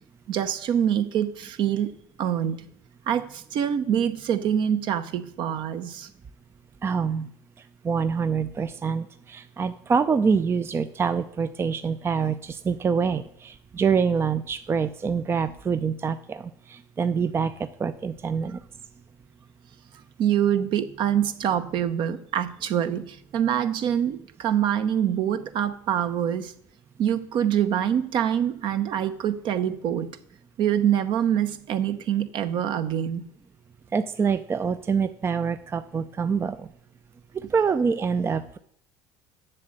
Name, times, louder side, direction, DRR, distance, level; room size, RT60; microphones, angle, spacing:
voice 1, 0.3-1.9 2.2-2.7 3.1-6.1 20.2-26.5 27.0-30.1 30.6-33.3, right 9 dB, 55° right, 10 dB, 0.9 m, -25 dB
voice 2, 6.8-7.3 7.8-18.6 33.9-36.7 37.3-38.6, right 6 dB, 25° right, 11 dB, 0.5 m, -26 dB
7.7 x 6.5 x 7.7 m, 0.67 s
hypercardioid pair, 80°, 10 cm